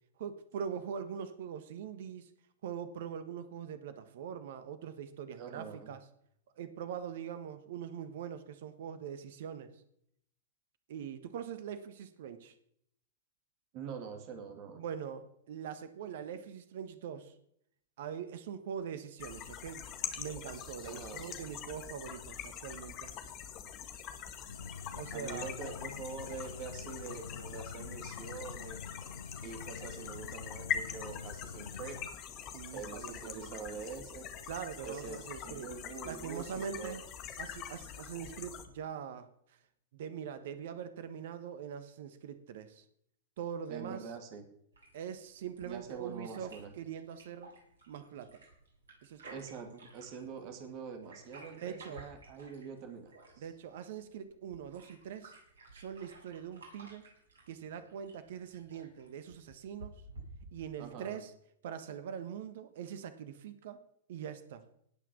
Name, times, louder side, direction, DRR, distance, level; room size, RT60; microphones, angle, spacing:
voice 1, 0.2-2.3 2.6-6.0 6.6-9.7 10.9-12.5 14.8-17.3 18.0-19.8 20.2-23.1 24.9-25.5 32.5-33.5 34.5-35.7 36.0-37.0 37.4-39.3 39.9-42.8 43.4-44.1 44.9-47.5 47.9-48.3 49.0-49.4 51.6-52.0 53.4-55.3 55.7-57.0 57.5-59.9 60.5-61.3 61.6-63.8 64.1-64.6, right 8 dB, 60° right, 11 dB, 1.2 m, -42 dB
voice 2, 5.4-5.9 13.7-14.8 20.8-21.2 25.1-28.8 29.4-32.0 32.7-34.3 34.8-37.1 43.7-44.4 45.6-46.7 49.3-53.5 60.8-61.2, right 5 dB, 45° right, 5 dB, 2.6 m, -45 dB
sound 1, 19.2-38.7, left 9 dB, 40° left, 1.9 m, -43 dB
sound 2, 24.5-32.1, left 5 dB, 75° left, 0.4 m, -47 dB
sound 3, 44.7-60.7, right 2 dB, 75° right, 7.4 m, -55 dB
18.0 x 6.1 x 7.2 m, 0.72 s
figure-of-eight pair, 100°, 0 cm